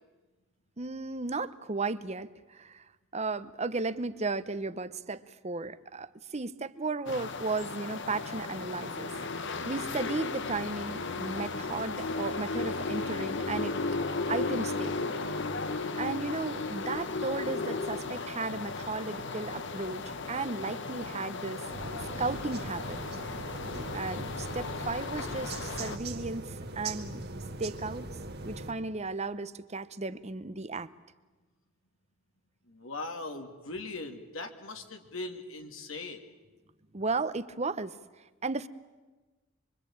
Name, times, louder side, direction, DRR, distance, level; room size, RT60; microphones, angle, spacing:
voice 1, 0.8-2.8 3.1-9.1 9.6-13.7 14.3-15.1 15.9-21.6 22.2-23.0 23.9-27.2 27.6-28.1 28.4-30.9 36.9-38.0 38.4-38.7, right 3 dB, 35° right, 13 dB, 0.9 m, -35 dB
sound 1, 7.1-26.0, left 3 dB, 60° left, 1.2 m, -35 dB
sound 2, 21.7-28.7, right 2 dB, 50° right, 1.9 m, -40 dB
voice 2, 32.7-36.2, left 2 dB, 75° left, 4 dB, 2.5 m, -40 dB
26.0 x 24.0 x 8.8 m, 1.2 s
head